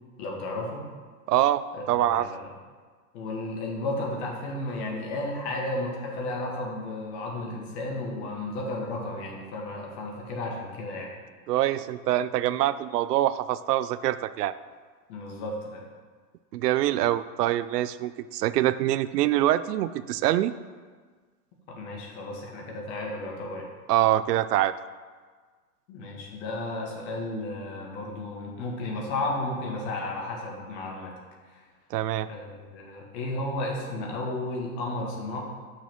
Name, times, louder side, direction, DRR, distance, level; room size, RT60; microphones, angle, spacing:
voice 1, 0.2-0.9 1.7-2.5 3.1-11.1 15.1-15.8 21.7-23.7 25.9-31.1 32.3-35.4, left 2 dB, 45° left, 0 dB, 1.9 m, -33 dB
voice 2, 1.3-2.3 11.5-14.5 16.5-20.5 23.9-24.7 31.9-32.3, right 13 dB, 80° right, 15 dB, 0.5 m, -25 dB
6.4 x 5.9 x 6.0 m, 1.5 s
hypercardioid pair, 140°, 47 cm